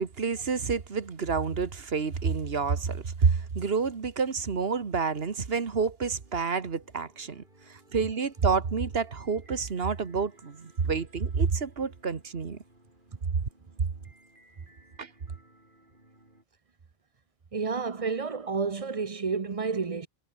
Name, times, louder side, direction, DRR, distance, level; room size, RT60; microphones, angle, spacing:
voice 1, 0.0-7.4 7.7-12.6 15.0-15.1, right 5 dB, 75° right, 1.7 m, -28 dB
sound 1, 6.0-16.4, right 1 dB, 55° right, 6.9 m, -60 dB
voice 2, 17.5-20.1, right 5 dB, 35° right, 0.9 m, -30 dB
omnidirectional pair, 1.0 m